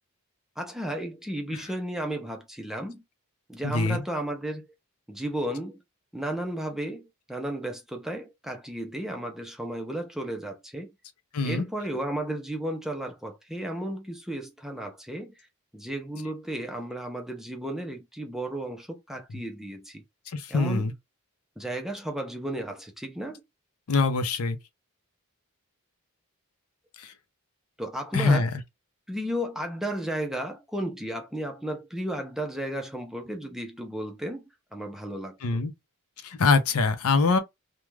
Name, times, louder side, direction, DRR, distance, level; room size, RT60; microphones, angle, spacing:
voice 1, 0.6-3.0 3.5-4.7 5.1-5.8 6.1-10.9 11.4-15.5 15.7-20.0 20.5-20.9 21.6-23.4 27.8-28.5 29.1-34.4 34.7-35.6, right 1 dB, ahead, 0.4 m, -34 dB
voice 2, 3.6-4.0 11.3-11.7 20.3-20.9 23.9-24.6 28.1-28.5 35.4-35.7 36.2-37.4, left 4 dB, 75° left, 0.6 m, -23 dB
2.3 x 2.2 x 3.1 m
head